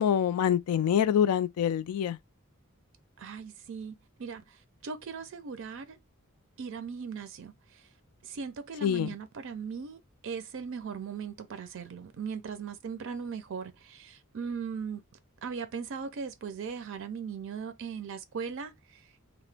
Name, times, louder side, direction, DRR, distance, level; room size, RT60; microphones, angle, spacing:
voice 1, 0.0-2.2 8.8-9.1, left 9 dB, 90° left, 0.3 m, -25 dB
voice 2, 3.2-6.0 6.6-7.9 8.2-15.0 15.4-19.1, right 6 dB, 60° right, 0.4 m, -39 dB
2.9 x 2.1 x 3.2 m
head